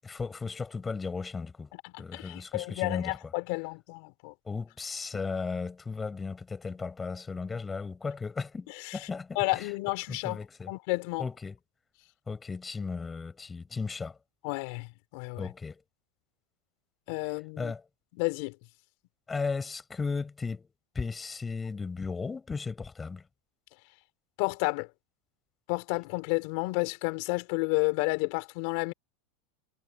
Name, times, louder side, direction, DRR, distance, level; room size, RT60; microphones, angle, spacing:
voice 1, 0.0-1.7 2.0-3.2 4.4-9.7 10.1-10.7 11.2-11.6 12.3-14.2 15.4-15.8 17.6-17.8 19.3-23.2, left 4 dB, 15° left, 7.5 m, -35 dB
voice 2, 1.8-4.3 8.8-9.0 9.3-10.4 10.7-11.2 14.4-15.5 17.1-17.7 18.2-18.5 24.4-24.9 25.7-28.9, left 27 dB, 65° left, 3.1 m, -31 dB
supercardioid pair, 120°, 0 cm